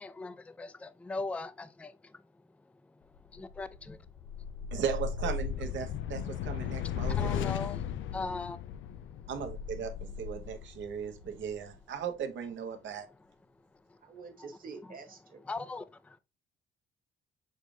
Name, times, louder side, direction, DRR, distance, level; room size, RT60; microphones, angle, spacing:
voice 1, 0.0-4.0 7.1-8.6 11.0-11.1 13.1-13.2 13.7-14.5 14.8-15.0 15.4-16.2, left 3 dB, 5° left, 0.3 m, -41 dB
sound 1, 3.3-11.8, left 8 dB, 75° left, 0.4 m, -36 dB
voice 2, 4.7-7.2 9.3-13.1, right 7 dB, 70° right, 1.0 m, -37 dB
voice 3, 14.0-15.4, right 4 dB, 45° right, 1.5 m, -47 dB
6.4 x 2.5 x 3.2 m
cardioid pair, 90°, 20 cm